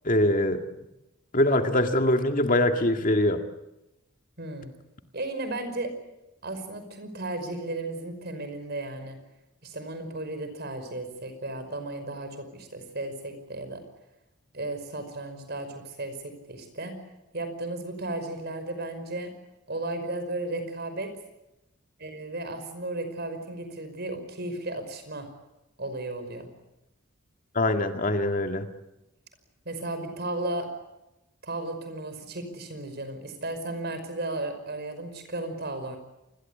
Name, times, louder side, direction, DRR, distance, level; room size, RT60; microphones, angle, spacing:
voice 1, 0.0-0.6 1.3-3.4 27.5-28.7, left 1 dB, 40° left, 6 dB, 2.0 m, -23 dB
voice 2, 4.4-4.7 5.1-5.9 6.4-9.2 9.6-13.8 14.5-17.0 17.3-19.3 19.7-21.1 22.0-25.3 25.8-26.5 29.7-30.7 31.4-36.0, right 2 dB, 50° right, 9 dB, 5.5 m, -34 dB
28.0 x 21.5 x 8.4 m, 0.93 s
head